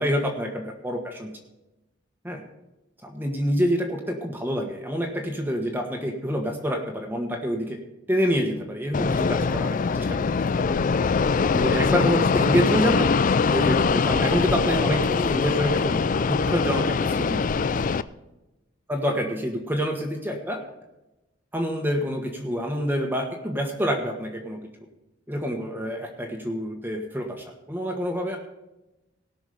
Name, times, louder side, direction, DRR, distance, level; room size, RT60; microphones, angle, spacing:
voice 1, 0.0-1.3 2.2-2.4 3.0-7.8 8.1-10.7 11.5-13.1 13.4-16.0 16.3-17.4 18.9-20.6 21.5-24.6 25.3-28.4, equal, 10° right, 1 dB, 1.3 m, -27 dB
Fixed-wing aircraft airplane, 8.9-18.0, left 5 dB, 45° left, 0.4 m, -23 dB
18.0 x 6.1 x 5.0 m, 0.98 s
head